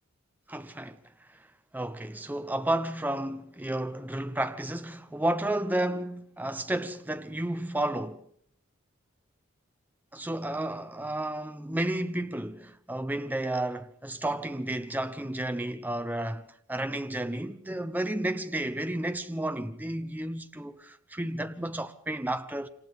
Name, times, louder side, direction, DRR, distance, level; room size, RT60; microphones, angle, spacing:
voice 1, 0.5-1.0 1.7-8.2 10.1-22.7, right 1 dB, 10° right, 0.8 m, -32 dB
27.5 x 26.5 x 3.6 m
head